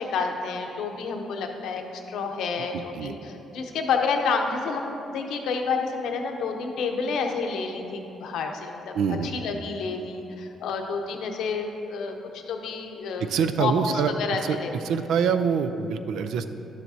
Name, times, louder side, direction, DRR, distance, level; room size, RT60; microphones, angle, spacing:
voice 1, 0.0-9.0 9.2-13.3 13.6-14.7, left 4 dB, 80° left, 3 dB, 0.8 m, -29 dB
voice 2, 2.6-3.2 8.9-9.3 13.2-14.1 14.4-14.6 14.8-16.5, right 7 dB, 80° right, 9 dB, 0.4 m, -25 dB
11.5 x 7.3 x 2.7 m, 2.9 s
cardioid pair, 90°, 0 cm